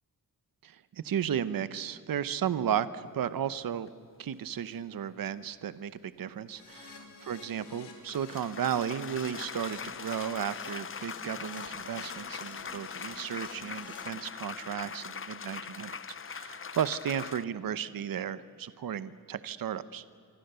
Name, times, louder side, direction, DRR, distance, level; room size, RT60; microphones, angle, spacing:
voice 1, 0.6-3.9 4.2-15.9 16.3-20.0, right 9 dB, 60° right, 14 dB, 0.8 m, -34 dB
sound 1, 3.9-4.0 7.0-17.4, left 6 dB, 35° left, 0.7 m, -41 dB
Keyboard (musical), 6.5-14.0, left 4 dB, 85° left, 4.6 m, -50 dB
26.0 x 25.5 x 6.9 m, 2.3 s
wide cardioid pair, 145°, 39 cm